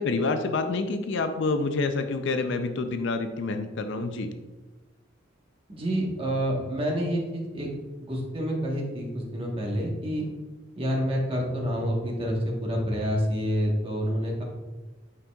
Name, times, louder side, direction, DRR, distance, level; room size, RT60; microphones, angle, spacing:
voice 1, 0.0-4.3, left 3 dB, 65° left, 8 dB, 0.4 m, -27 dB
voice 2, 5.7-7.7 8.0-10.2 10.8-14.4, equal, 30° right, -1 dB, 1.2 m, -28 dB
8.6 x 5.2 x 2.3 m, 1.2 s
head